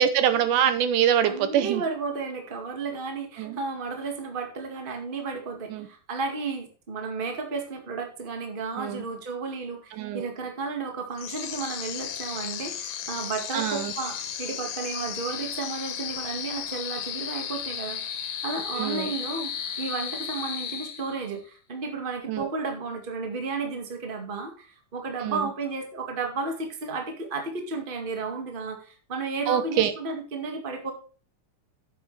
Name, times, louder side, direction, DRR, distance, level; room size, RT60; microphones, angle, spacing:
voice 1, 0.0-1.8 3.4-3.6 5.7-5.9 8.8-9.0 10.0-10.3 13.5-13.9 18.8-19.1 22.3-22.5 25.2-25.4 29.5-29.9, right 9 dB, 80° right, 10 dB, 2.4 m, -24 dB
voice 2, 1.2-18.0 18.4-30.9, right 4 dB, 20° right, 3 dB, 1.5 m, -33 dB
sound 1, 11.2-21.4, left 9 dB, 85° left, 2.8 m, -34 dB
10.5 x 8.4 x 3.3 m, 0.40 s
omnidirectional pair, 3.7 m